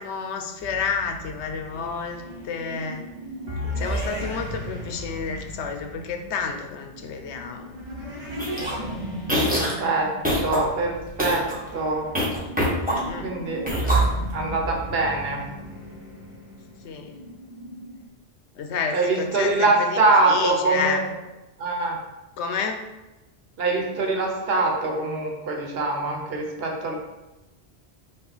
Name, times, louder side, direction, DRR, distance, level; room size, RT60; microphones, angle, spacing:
voice 1, 0.0-3.1 3.8-7.7 12.9-13.3 16.8-17.2 18.6-21.0 22.4-22.8, left 6 dB, 85° left, 5 dB, 0.9 m, -30 dB
sound 1, 0.6-18.1, right 1 dB, 35° right, 0.7 m, -34 dB
sound 2, 8.4-8.7 9.2-9.8 10.2-10.6 11.1-11.5 12.2-13.2 13.7-14.4, equal, 10° right, 1.0 m, -24 dB
voice 2, 9.8-10.1 10.4-11.5 11.7-12.1 13.2-13.6 14.3-15.4 18.9-21.0 21.6-22.0 23.6-26.9, right 3 dB, 65° right, 0 dB, 1.0 m, -23 dB
5.3 x 2.3 x 4.0 m, 1.0 s
omnidirectional pair, 1.1 m